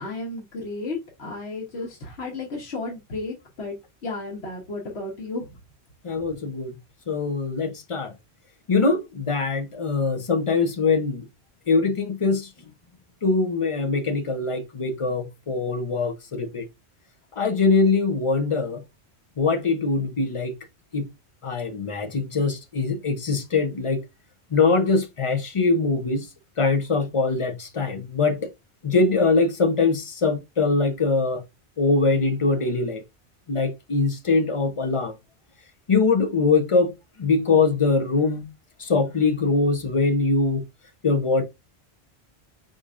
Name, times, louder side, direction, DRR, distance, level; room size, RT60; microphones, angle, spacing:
voice 1, 0.0-3.7 4.0-5.4, left 3 dB, 75° left, 1.4 m, -33 dB
voice 2, 6.0-6.7 7.1-8.1 8.7-11.3 11.7-12.5 13.2-16.6 17.4-18.8 19.4-20.5 20.9-21.1 21.4-24.0 24.5-26.3 26.6-28.5 28.8-31.4 31.8-33.0 33.5-35.1 35.9-36.9 37.2-38.5 38.8-40.6 41.0-41.4, left 4 dB, 35° left, 0.6 m, -22 dB
5.0 x 3.9 x 2.4 m
omnidirectional pair, 1.1 m